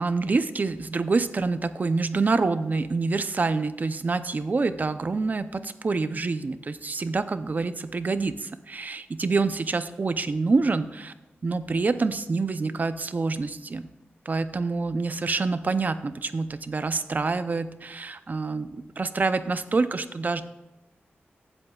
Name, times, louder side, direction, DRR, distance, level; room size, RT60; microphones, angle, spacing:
voice 1, 0.0-11.1 11.4-13.9 14.3-20.4, right 3 dB, 40° right, 11 dB, 0.6 m, -26 dB
15.5 x 7.9 x 2.4 m, 0.98 s
wide cardioid pair, 105°, 4 cm